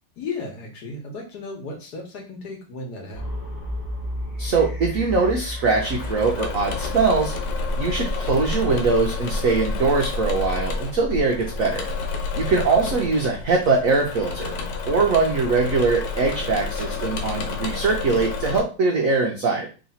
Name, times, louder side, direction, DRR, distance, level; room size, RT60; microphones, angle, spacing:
voice 1, 0.2-3.4 12.3-12.6, left 3 dB, 60° left, 2 dB, 1.3 m, -35 dB
sound 1, 3.1-17.7, left 1 dB, 15° left, 0.6 m, -34 dB
voice 2, 4.4-7.3 7.8-11.8 12.4-14.5 14.9-19.7, right 4 dB, 80° right, 1 dB, 0.7 m, -22 dB
Engine / Mechanisms, 5.7-18.6, left 4 dB, 85° left, 1.6 m, -30 dB
3.2 x 3.0 x 4.0 m, 0.35 s
omnidirectional pair, 2.3 m